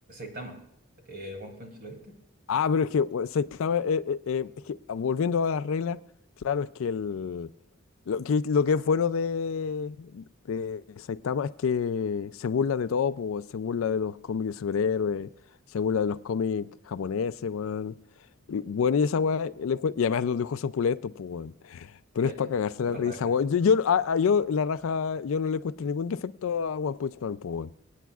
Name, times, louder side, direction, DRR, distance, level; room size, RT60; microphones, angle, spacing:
voice 1, 0.1-0.6 1.1-2.1 22.2-22.4 22.8-23.3, right 1 dB, 45° right, 2.6 m, -40 dB
voice 2, 2.5-6.0 6.4-7.5 8.1-15.3 15.7-17.9 18.5-27.7, left 6 dB, 70° left, 0.4 m, -27 dB
25.0 x 9.2 x 2.4 m
head